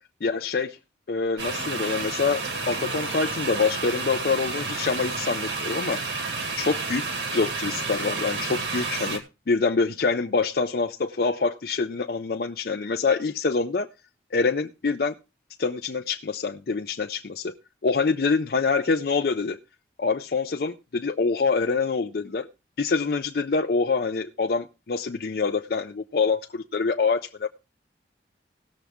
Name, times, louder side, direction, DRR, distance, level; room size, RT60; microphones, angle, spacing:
voice 1, 0.2-0.8 1.1-6.2 6.6-7.0 7.3-13.9 14.3-15.1 15.6-17.5 17.8-19.6 20.0-22.5 22.8-27.5, left 4 dB, 55° left, 6 dB, 0.5 m, -25 dB
sound 1, 1.4-9.2, right 3 dB, 80° right, 2.0 m, -30 dB
17.5 x 7.0 x 3.5 m, 0.29 s
head